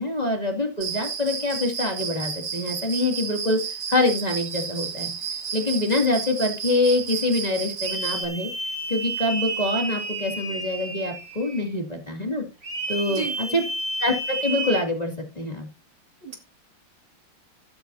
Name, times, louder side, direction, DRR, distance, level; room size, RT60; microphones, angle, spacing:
voice 1, 0.0-3.6 3.9-5.1 5.5-8.5 8.9-12.4 12.9-13.6 14.0-15.7, left 2 dB, 20° left, 2 dB, 2.4 m, -25 dB
Cricket, 0.8-8.3, right 7 dB, 85° right, 2.5 m, -32 dB
sound 1, 7.8-11.7 12.6-14.8, right 2 dB, 35° right, 2.9 m, -31 dB
voice 2, 13.0-13.6 16.2-16.4, right 6 dB, 65° right, 2 dB, 3.0 m, -34 dB
13.0 x 12.5 x 2.7 m, 0.29 s
omnidirectional pair, 2.3 m